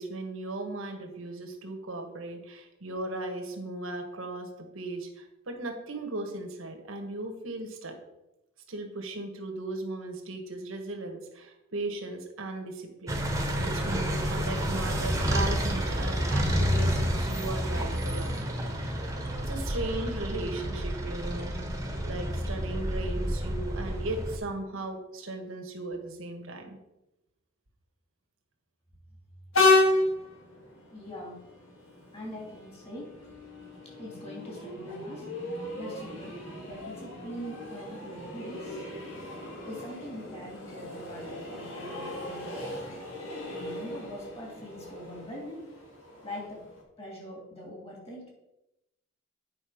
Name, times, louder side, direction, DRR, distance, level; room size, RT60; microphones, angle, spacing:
voice 1, 0.0-8.0 8.7-13.2 13.6-18.4 19.5-26.8, right 2 dB, 85° right, 3 dB, 1.5 m, -37 dB
sound 1, 13.1-24.4, equal, 15° right, 1.1 m, -29 dB
Train, 29.5-46.8, left 2 dB, 80° left, 2.5 m, -33 dB
voice 2, 30.9-31.4 32.1-33.2 33.8-35.3 35.8-36.4 36.6-39.1 39.6-43.0 43.5-45.7 46.2-46.7 47.0-48.3, equal, 30° left, -1 dB, 2.8 m, -43 dB
8.9 x 5.4 x 5.0 m, 0.93 s
head